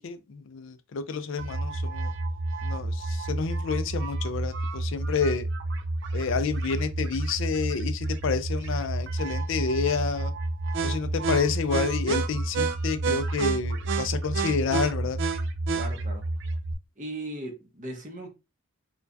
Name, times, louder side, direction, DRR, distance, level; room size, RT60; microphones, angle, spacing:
voice 1, 0.0-2.1 2.6-5.5 6.1-10.3 10.8-15.2, left 5 dB, 55° left, 0.4 m, -29 dB
sound 1, 1.4-16.7, right 2 dB, 55° right, 0.4 m, -29 dB
voice 2, 15.7-16.3 17.0-18.3, right 1 dB, 35° right, 0.9 m, -37 dB
4.5 x 2.2 x 2.6 m
head